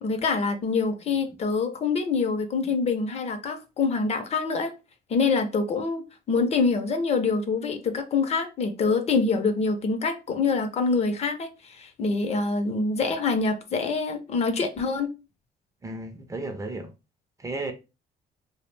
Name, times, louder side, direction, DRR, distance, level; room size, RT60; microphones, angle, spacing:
voice 1, 0.0-4.7 5.1-15.1, left 4 dB, 40° left, 0.5 m, -25 dB
voice 2, 15.8-16.9 17.4-17.7, right 2 dB, 20° right, 0.4 m, -34 dB
2.3 x 2.0 x 3.1 m
cardioid pair, 110°, 17 cm